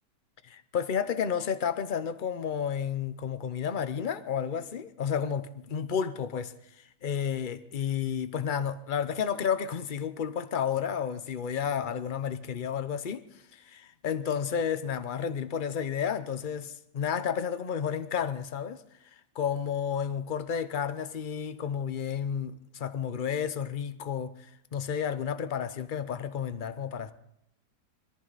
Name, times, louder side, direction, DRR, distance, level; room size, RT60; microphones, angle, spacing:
voice 1, 0.4-13.2 13.5-18.8 19.3-27.1, left 7 dB, 50° left, 0.6 m, -31 dB
22.0 x 14.0 x 4.1 m
omnidirectional pair, 1.9 m